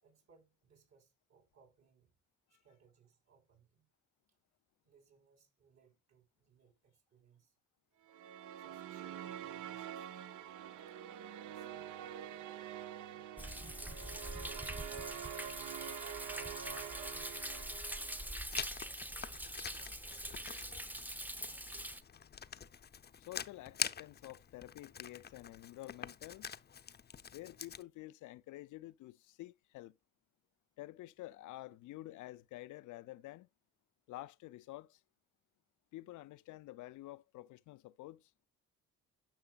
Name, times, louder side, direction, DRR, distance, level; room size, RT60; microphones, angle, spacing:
voice 1, 0.0-2.1 2.5-3.9 4.9-7.6 8.6-10.1 10.9-11.0 11.4-12.7 13.1-13.4 16.8-18.3 18.8-19.5 20.1-20.9, right 6 dB, 60° right, 4.0 m, -67 dB
sound 1, 8.1-18.5, right 10 dB, 75° right, 0.8 m, -46 dB
Thunder, 13.4-22.0, right 1 dB, 5° right, 0.7 m, -44 dB
Writing, 18.5-27.8, left 7 dB, 35° left, 0.6 m, -45 dB
voice 2, 23.2-26.5 27.3-30.0 30.8-33.5 34.1-35.0 35.9-38.3, left 16 dB, 80° left, 0.5 m, -50 dB
10.0 x 6.0 x 2.3 m
cardioid pair, 90°, 30 cm